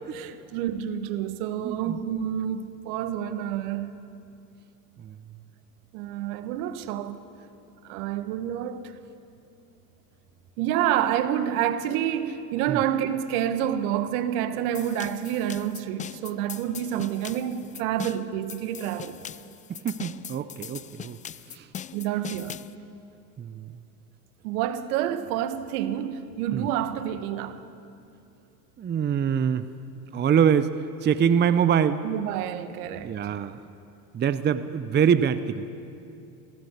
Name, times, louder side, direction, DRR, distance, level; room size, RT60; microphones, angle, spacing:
voice 1, 0.1-4.0 5.9-7.2 7.8-8.9 10.6-19.2 21.9-22.6 24.4-27.6 32.0-33.2, right 10 dB, 65° right, 1.5 m, -28 dB
voice 2, 1.6-2.0 5.0-5.2 12.7-12.8 19.7-21.2 21.5-21.7 23.4-23.7 26.5-26.7 28.8-29.7 30.1-30.7 31.0-32.0 33.0-33.6 34.1-35.7, right 8 dB, 20° right, 0.7 m, -24 dB
sound 1, 14.7-22.7, left 8 dB, 15° left, 0.4 m, -40 dB
18.5 x 17.0 x 8.3 m
hypercardioid pair, 80°, 47 cm